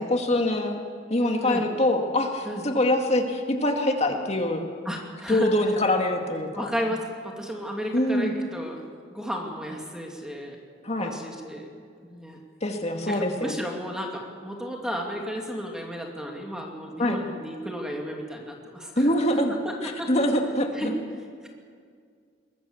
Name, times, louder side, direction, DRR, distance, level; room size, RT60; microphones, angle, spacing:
voice 1, 0.0-4.6 5.3-6.7 7.9-8.4 10.8-11.1 12.6-13.6 17.0-17.2 19.0-19.5 19.8-20.9, left 1 dB, 35° left, 3 dB, 2.2 m, -24 dB
voice 2, 4.8-5.5 6.5-8.8 9.1-10.6 11.0-11.7 12.0-12.4 13.1-19.1 19.6-20.1 20.7-20.9, equal, 5° right, 0 dB, 2.5 m, -33 dB
23.5 x 21.0 x 7.2 m, 2.1 s
head